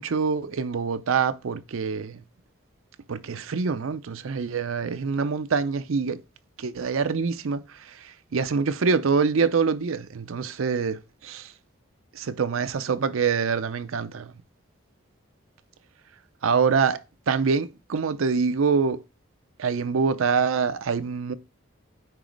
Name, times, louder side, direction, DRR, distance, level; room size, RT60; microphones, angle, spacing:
voice 1, 0.0-2.2 3.1-6.2 6.6-7.9 8.3-11.5 12.1-14.3 16.4-17.0 17.3-19.0 19.6-21.3, right 5 dB, 85° right, 0.5 m, -25 dB
8.9 x 3.0 x 5.1 m
head